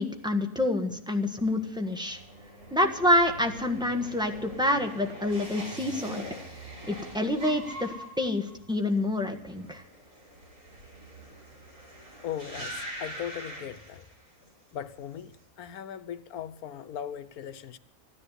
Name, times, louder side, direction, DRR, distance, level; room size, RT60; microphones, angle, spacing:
voice 1, 0.0-2.2 2.7-6.2 6.8-9.8, left 1 dB, 5° right, 1.3 m, -27 dB
sound 1, 1.4-14.5 14.8-15.3, equal, 80° right, 6.1 m, -43 dB
voice 2, 12.2-14.1 14.7-17.8, left 9 dB, 85° left, 1.3 m, -38 dB
15.0 x 10.5 x 8.1 m
omnidirectional pair, 1.5 m